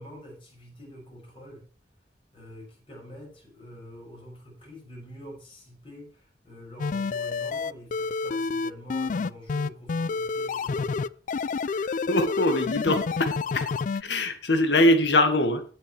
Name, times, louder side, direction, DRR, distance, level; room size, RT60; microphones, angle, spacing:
voice 1, 0.0-1.7 2.3-11.2, equal, 30° left, 6.6 m, -46 dB
sound 1, 6.8-14.0, left 4 dB, 45° left, 0.4 m, -29 dB
voice 2, 11.7-13.7 14.0-15.6, left 1 dB, 80° left, 1.8 m, -23 dB
17.0 x 6.8 x 3.3 m
head